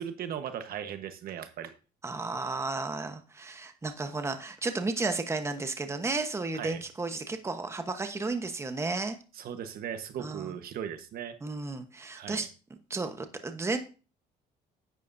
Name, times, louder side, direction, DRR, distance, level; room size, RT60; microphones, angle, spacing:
voice 1, 0.0-1.7 6.5-6.8 9.3-11.4 12.1-12.5, right 9 dB, 60° right, 8 dB, 1.2 m, -38 dB
voice 2, 2.0-9.2 10.2-10.5 11.4-12.5 12.9-13.8, right 3 dB, 15° right, 7 dB, 1.1 m, -33 dB
10.5 x 9.5 x 2.7 m, 0.33 s
cardioid pair, 110°, 17 cm